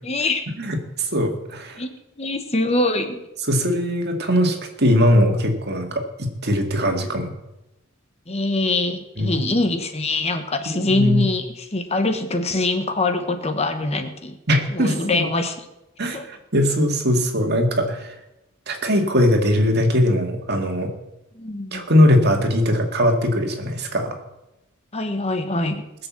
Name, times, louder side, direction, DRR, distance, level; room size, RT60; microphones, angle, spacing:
voice 1, 0.0-0.4 1.8-3.2 8.3-14.4 14.7-15.6 16.1-16.3 21.3-21.8 24.9-25.8, left 2 dB, 30° left, 7 dB, 1.1 m, -23 dB
voice 2, 0.6-1.8 3.5-7.3 9.2-9.4 10.8-11.3 14.5-15.2 16.0-18.1 18.7-20.9 21.7-24.2, equal, 50° right, 4 dB, 2.2 m, -20 dB
20.5 x 6.9 x 7.5 m, 0.92 s
head